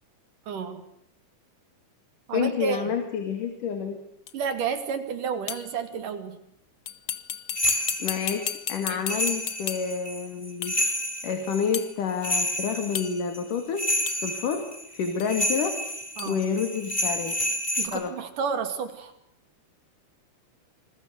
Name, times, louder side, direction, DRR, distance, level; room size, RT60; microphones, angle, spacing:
voice 1, 0.5-0.8 2.3-2.8 4.3-6.4 8.9-9.0 16.2-16.4 17.8-19.1, right 6 dB, 80° right, 9 dB, 4.2 m, -31 dB
voice 2, 2.3-4.0 8.0-10.8 11.2-13.9 14.2-15.8 16.3-17.4 17.9-18.1, left 6 dB, 80° left, 7 dB, 3.9 m, -29 dB
sound 1, 4.3-4.4 5.5-5.8 6.9-10.0 10.6-10.9 11.7-12.0 12.9-13.4 14.1-14.3 15.2-15.3 16.2-16.4, left 9 dB, 55° left, 1.4 m, -34 dB
sound 2, 7.5-17.9, left 1 dB, 15° left, 3.5 m, -30 dB
28.5 x 21.5 x 8.1 m, 0.72 s
omnidirectional pair, 3.6 m